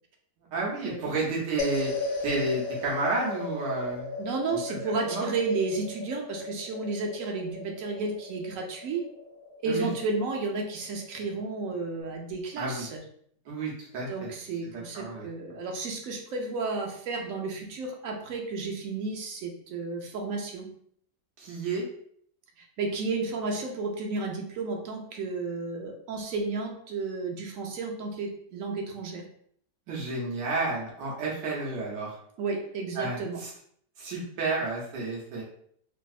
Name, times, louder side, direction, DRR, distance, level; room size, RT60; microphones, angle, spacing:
voice 1, 0.5-1.9 2.2-4.1 4.5-4.8 5.0-5.3 9.7-9.9 12.6-12.9 13.4-14.3 14.9-15.3 21.4-21.8 29.9-32.2 32.9-33.5 34.0-35.4, right 3 dB, 90° right, -3 dB, 1.4 m, -31 dB
sound 1, 1.6-12.0, left 3 dB, 65° left, 1.1 m, -37 dB
voice 2, 4.2-9.0 9.6-13.0 14.1-20.7 22.6-29.2 32.4-33.4, right 3 dB, 65° right, 1 dB, 0.8 m, -32 dB
3.3 x 2.6 x 2.4 m, 0.65 s
omnidirectional pair, 1.8 m